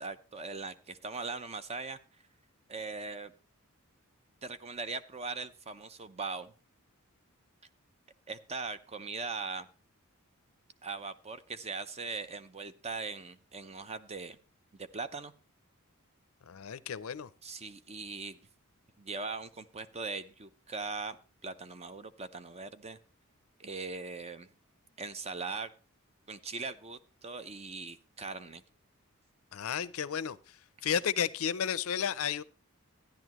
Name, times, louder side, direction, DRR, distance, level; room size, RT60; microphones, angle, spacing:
voice 1, 0.0-2.0 2.7-3.3 4.4-6.5 8.3-9.7 10.8-14.4 14.7-15.3 17.4-18.4 19.0-21.2 21.4-23.0 23.6-24.5 25.0-25.7 26.3-28.6, right 4 dB, 30° right, 0.7 m, -40 dB
voice 2, 16.5-17.3 29.5-30.4 30.8-32.4, left 8 dB, 70° left, 0.5 m, -32 dB
13.0 x 10.5 x 3.0 m
head